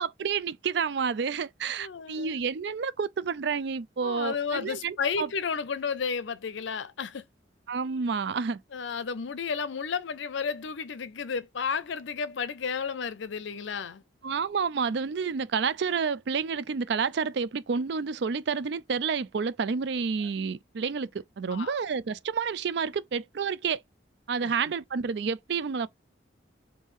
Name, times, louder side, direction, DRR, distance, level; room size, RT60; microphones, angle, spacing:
voice 1, 0.0-5.3 7.7-8.6 14.2-23.8 24.3-25.9, right 5 dB, 60° right, 0.4 m, -29 dB
voice 2, 1.8-2.3 4.0-7.2 8.7-14.0 21.5-21.7 24.4-24.5, left 6 dB, 70° left, 0.5 m, -32 dB
5.4 x 2.7 x 3.1 m
head